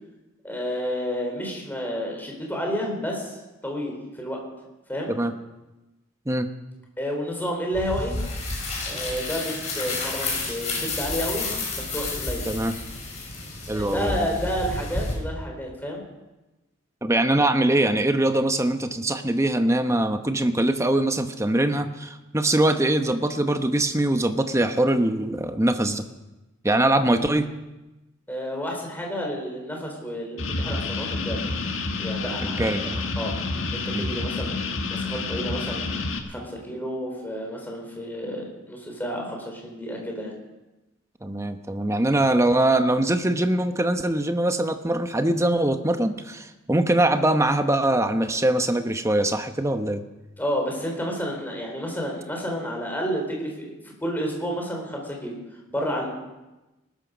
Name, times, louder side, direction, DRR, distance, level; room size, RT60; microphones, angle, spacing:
voice 1, 0.4-3.4 3.6-4.4 4.9-5.1 7.0-8.2 8.9-12.4 13.7-16.0 28.3-31.4 32.0-32.9 33.2-33.3 33.7-34.6 34.9-40.3 50.4-55.3 55.7-56.1, equal, 10° left, 0 dB, 3.9 m, -30 dB
sound 1, 7.7-15.1, left 2 dB, 35° left, 5.3 m, -30 dB
voice 2, 13.7-14.2 17.0-26.1 26.6-27.5 32.4-33.0 33.9-34.1 41.2-50.0, right 1 dB, 15° right, 8 dB, 0.9 m, -22 dB
sound 2, 30.4-36.2, left 3 dB, 75° left, 1.6 m, -29 dB
19.5 x 13.0 x 5.1 m, 1.0 s
head